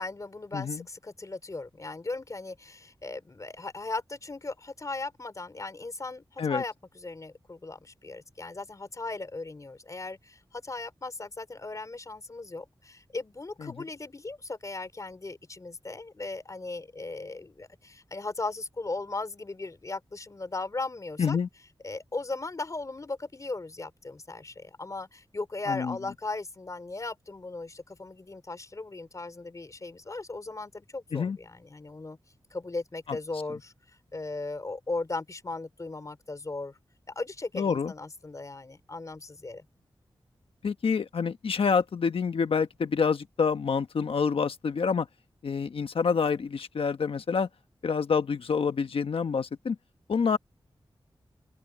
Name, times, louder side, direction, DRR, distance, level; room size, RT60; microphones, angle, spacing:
voice 1, 0.0-21.4 21.8-32.2 32.5-33.7 34.1-36.8 37.1-39.6, left 3 dB, 35° left, 3.1 m, -37 dB
voice 2, 0.5-0.8 6.4-6.6 13.6-13.8 21.2-21.5 25.7-26.0 31.1-31.4 37.5-37.9 40.6-45.1 45.4-47.5 47.8-49.8 50.1-50.4, left 5 dB, 80° left, 1.2 m, -27 dB
open air
wide cardioid pair, 95°, 9 cm